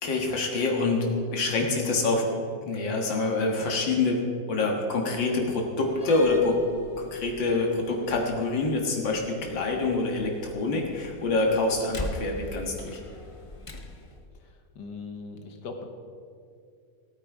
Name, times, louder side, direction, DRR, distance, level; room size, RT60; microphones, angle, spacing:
voice 1, 0.0-2.3 2.7-4.2 4.5-6.6 7.0-13.0, left 3 dB, 85° left, 1 dB, 2.4 m, -26 dB
Slam, 5.8-14.2, left 2 dB, 30° left, 0.5 m, -42 dB
voice 2, 14.3-15.8, left 4 dB, 70° left, 4 dB, 1.9 m, -40 dB
17.5 x 9.1 x 4.8 m, 2.4 s
omnidirectional pair, 2.0 m